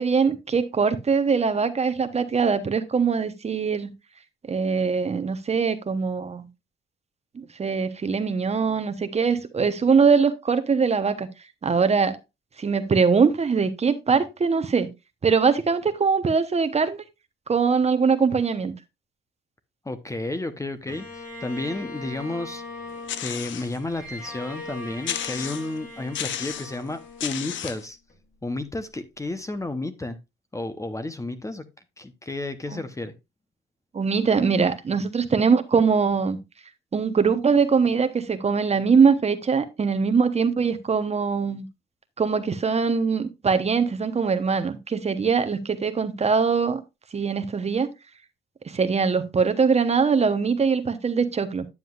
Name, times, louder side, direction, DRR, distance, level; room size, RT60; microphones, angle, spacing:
voice 1, 0.0-3.9 4.5-6.5 7.3-11.3 11.6-12.2 12.6-14.9 15.2-17.0 17.5-18.7 32.7-32.8 33.9-36.4 36.9-41.7 42.2-46.8 47.1-47.9 48.6-51.7, right 5 dB, 35° right, 0.9 m, -22 dB
voice 2, 19.8-22.6 23.2-28.0 28.4-30.2 30.5-31.7 32.0-33.1, left 2 dB, 15° left, 0.8 m, -32 dB
Bowed string instrument, 20.9-28.1, left 2 dB, 45° left, 2.7 m, -40 dB
sound 1, 23.1-23.8 24.3-24.4 25.0-25.8 26.1-26.8 27.2-27.9, left 10 dB, 70° left, 0.7 m, -32 dB
9.5 x 7.6 x 2.4 m
cardioid pair, 90°, 20 cm